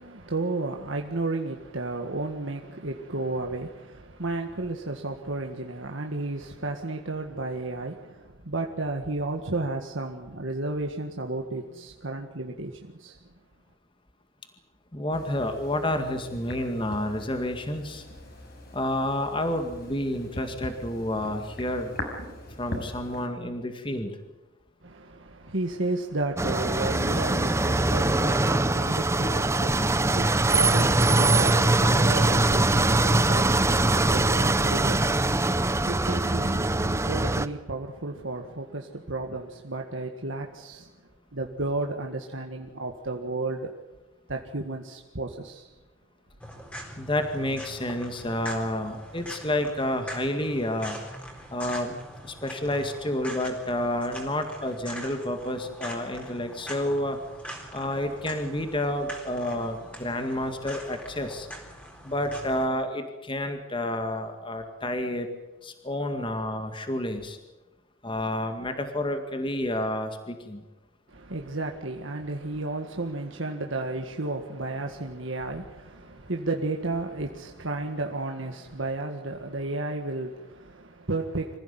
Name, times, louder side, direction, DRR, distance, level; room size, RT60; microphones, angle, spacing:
voice 1, 0.0-13.3 24.8-40.9 41.3-43.7 44.3-45.7 71.1-81.6, right 2 dB, 70° right, 1.8 m, -33 dB
voice 2, 14.9-18.1 18.7-21.9 22.6-24.1 47.0-51.0 51.5-51.9 52.2-57.2 57.7-61.5 62.0-65.3 65.6-67.4 68.0-70.6, left 1 dB, 25° left, 2.0 m, -29 dB
sound 1, 15.1-23.3, left 1 dB, 50° left, 5.4 m, -41 dB
sound 2, 26.4-37.5, right 2 dB, 15° right, 0.7 m, -22 dB
sound 3, 46.4-62.7, equal, 5° left, 4.1 m, -42 dB
26.0 x 15.5 x 9.4 m
head